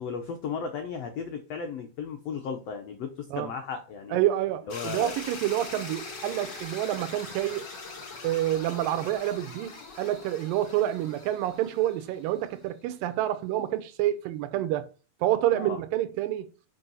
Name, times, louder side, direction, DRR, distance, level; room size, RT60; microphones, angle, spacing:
voice 1, 0.0-4.2 4.7-5.1 15.5-15.8, left 6 dB, 85° left, 1.4 m, -35 dB
voice 2, 4.1-7.6 8.2-14.9 15.2-16.5, right 13 dB, 80° right, 2.4 m, -28 dB
sound 1, 4.7-12.7, left 3 dB, 35° left, 2.0 m, -42 dB
5.6 x 5.4 x 5.5 m
omnidirectional pair, 4.2 m